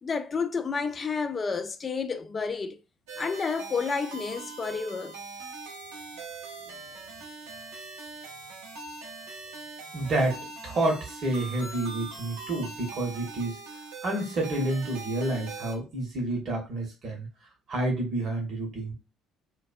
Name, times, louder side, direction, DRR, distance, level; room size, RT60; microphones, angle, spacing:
voice 1, 0.0-2.8 3.2-5.2, left 5 dB, 35° left, 0.3 m, -30 dB
sound 1, 3.1-15.7, right 3 dB, 70° right, 0.6 m, -42 dB
voice 2, 9.9-13.6 14.0-17.3 17.7-18.9, right 2 dB, 45° right, 1.0 m, -29 dB
2.5 x 2.2 x 2.5 m
figure-of-eight pair, 50°, 0 cm